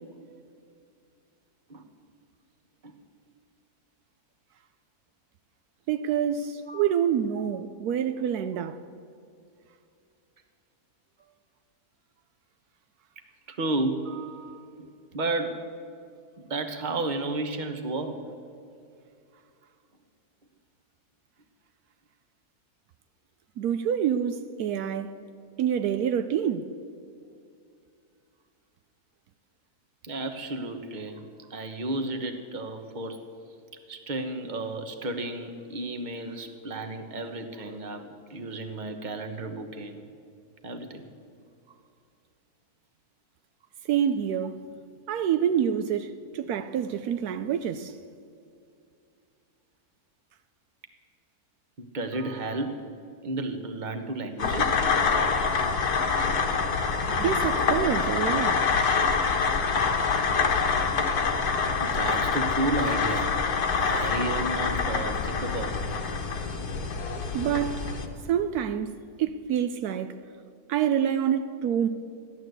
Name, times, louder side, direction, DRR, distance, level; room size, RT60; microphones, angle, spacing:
voice 1, 5.9-8.8 23.6-25.2 25.6-26.7 43.9-44.6 45.1-47.9 57.0-58.7 67.3-67.9 68.3-70.2 70.7-71.9, right 9 dB, 75° right, 1.1 m, -27 dB
voice 2, 13.5-14.6 15.1-15.6 16.5-18.2 30.0-33.2 33.9-40.0 40.6-41.0 51.8-52.9 53.2-54.7 56.4-57.0 61.8-63.4 63.7-65.8, right 2 dB, 30° right, 1.2 m, -32 dB
sound 1, 54.4-68.1, left 5 dB, 80° left, 1.8 m, -26 dB
14.5 x 11.5 x 7.9 m
omnidirectional pair, 1.7 m